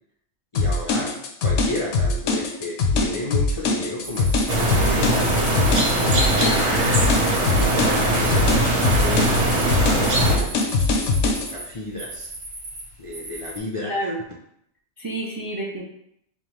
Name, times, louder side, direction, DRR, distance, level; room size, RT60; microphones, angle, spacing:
sound 1, 0.5-11.5, left 3 dB, 85° left, 0.9 m, -22 dB
voice 1, 0.5-1.2 1.4-5.5 6.0-7.0 7.6-12.3 13.0-14.1, left 2 dB, 50° left, -4 dB, 0.4 m, -33 dB
sound 2, 4.0-13.6, right 2 dB, 65° right, 1.1 m, -37 dB
sound 3, 4.5-10.4, right 1 dB, 85° right, 1.3 m, -21 dB
voice 2, 13.8-14.2 15.0-15.8, right 1 dB, 30° right, -4 dB, 0.4 m, -29 dB
5.2 x 2.3 x 3.0 m, 0.76 s
omnidirectional pair, 1.2 m